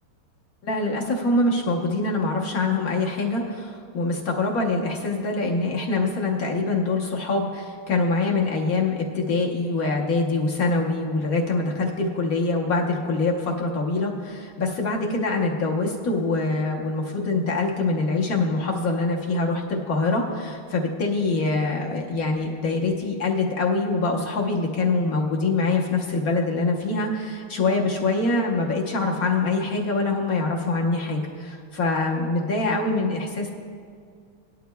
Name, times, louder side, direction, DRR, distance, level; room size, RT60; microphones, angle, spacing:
voice 1, 0.6-33.5, left 3 dB, 50° left, 0 dB, 1.2 m, -24 dB
18.5 x 11.5 x 2.3 m, 2.1 s
omnidirectional pair, 2.4 m